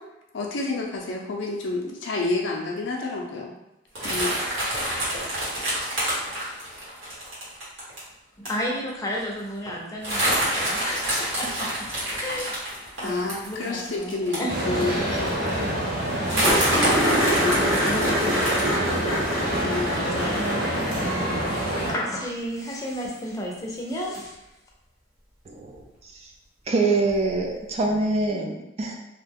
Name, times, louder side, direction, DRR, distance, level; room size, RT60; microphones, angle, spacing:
voice 1, 0.3-3.5 4.0-4.4 13.0-15.3 17.2-17.7 18.0-18.1 19.6-20.5, left 2 dB, 75° left, -1 dB, 0.4 m, -29 dB
sound 1, 4.0-8.0 8.5-8.6 8.9-9.0 9.2-9.5 10.0-15.0 15.5-15.6 16.3-18.7, right 1 dB, 90° right, 1.2 m, -27 dB
voice 2, 8.4-11.9 12.2-12.6 13.0-14.9 15.5-16.5 17.0-19.2 19.6-19.8 21.0-21.6 21.9-24.4, equal, 20° left, -2 dB, 0.5 m, -33 dB
sound 2, 14.5-21.9, right 1 dB, 55° right, 0.9 m, -27 dB
sound 3, 15.0-15.1 15.3-15.4 15.7-15.8 16.4-21.8 24.1-24.2 27.1-27.2, equal, 5° right, 0.8 m, -26 dB
voice 3, 25.5-25.8 26.1-26.3 26.7-28.9, right 3 dB, 35° right, 1 dB, 0.3 m, -25 dB
2.4 x 2.1 x 3.4 m, 0.91 s
head